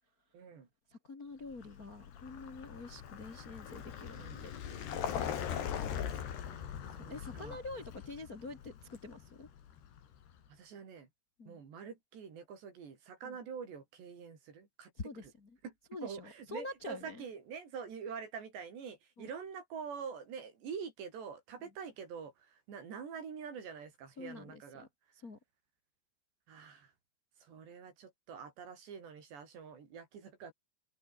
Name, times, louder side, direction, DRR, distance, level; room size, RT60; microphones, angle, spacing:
voice 1, 0.3-0.7 4.1-4.4 6.3-7.6 10.5-11.1 11.5-15.3 15.6-15.7 16.0-24.9 26.5-26.9 27.4-30.5, right 6 dB, 65° right, 6.7 m, -46 dB
voice 2, 0.9-5.1 7.1-9.5 11.4-11.6 13.2-13.4 15.0-15.5 15.9-17.2 19.2-19.3 24.2-24.9 25.2-25.4, left 2 dB, 30° left, 1.8 m, -46 dB
Vehicle, 1.5-10.3, left 9 dB, 65° left, 4.8 m, -41 dB
open air
omnidirectional pair, 5.3 m